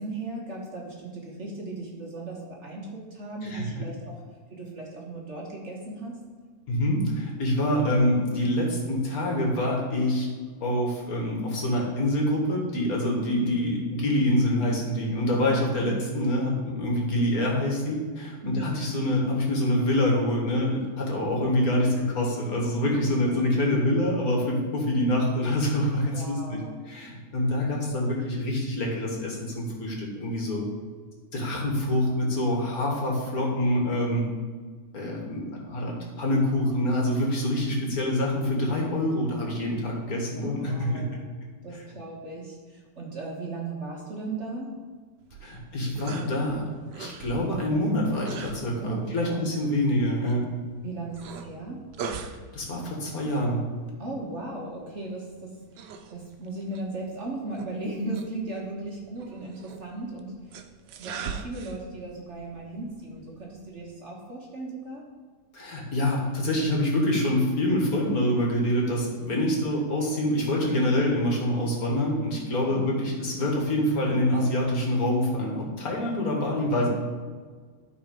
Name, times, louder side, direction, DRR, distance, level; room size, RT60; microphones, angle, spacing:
voice 1, 0.0-4.2 4.5-6.2 15.8-15.9 18.4-18.7 23.3-23.4 26.0-26.8 40.3-41.2 41.6-44.8 48.8-49.4 50.8-51.8 54.0-60.5 61.0-65.1 69.4-69.6 72.6-72.8, right 2 dB, 45° right, -2 dB, 1.4 m, -37 dB
voice 2, 6.7-10.3 10.6-26.6 26.9-30.7 31.3-34.2 34.9-41.0 45.4-46.6 46.9-50.4 52.5-53.6 65.5-76.9, left 1 dB, 60° left, -1 dB, 2.1 m, -26 dB
sound 1, 45.2-63.9, right 6 dB, 80° right, 1.3 m, -43 dB
12.5 x 4.2 x 5.2 m, 1.5 s
omnidirectional pair, 1.8 m